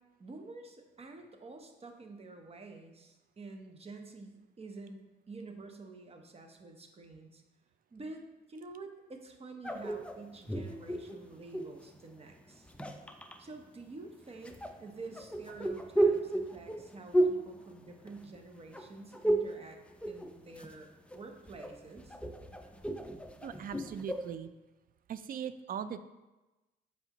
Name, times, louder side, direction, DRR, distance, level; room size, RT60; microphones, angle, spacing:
voice 1, 0.2-7.4 7.9-8.2 8.5-12.7 13.4-19.8 20.1-22.2, right 3 dB, 30° right, 4 dB, 0.9 m, -48 dB
sound 1, 9.6-11.8 12.5-13.4 14.4-18.5 18.7-19.6 19.9-20.8 21.1-24.3, right 1 dB, 5° left, 0.5 m, -33 dB
voice 2, 23.4-24.5 25.1-26.0, right 8 dB, 45° right, 12 dB, 0.4 m, -39 dB
8.0 x 4.9 x 3.0 m, 1.1 s
cardioid pair, 90°, 20 cm